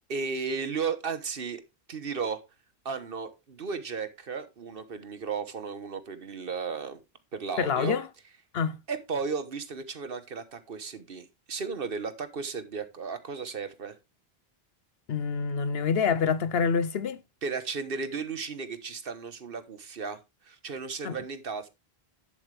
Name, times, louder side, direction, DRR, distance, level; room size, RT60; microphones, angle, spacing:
voice 1, 0.1-1.6 1.9-2.4 2.8-7.0 7.3-8.0 8.9-14.0 17.4-21.7, right 5 dB, 60° right, 1.3 m, -34 dB
voice 2, 7.6-8.1 8.5-8.8 15.1-17.2 21.0-21.1, left 6 dB, 70° left, 1.0 m, -26 dB
11.0 x 7.9 x 3.3 m
omnidirectional pair, 1.1 m